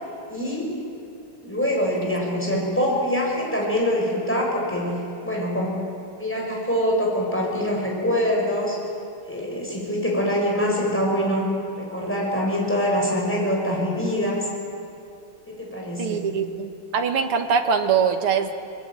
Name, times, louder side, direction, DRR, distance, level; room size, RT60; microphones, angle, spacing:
voice 1, 0.3-0.7 1.4-5.8 6.2-8.8 9.2-11.5 11.8-14.5 15.5-16.3, equal, 5° left, -2 dB, 6.5 m, -24 dB
voice 2, 16.0-18.5, right 6 dB, 85° right, 6 dB, 2.3 m, -23 dB
24.0 x 21.0 x 9.1 m, 2.8 s
omnidirectional pair, 2.4 m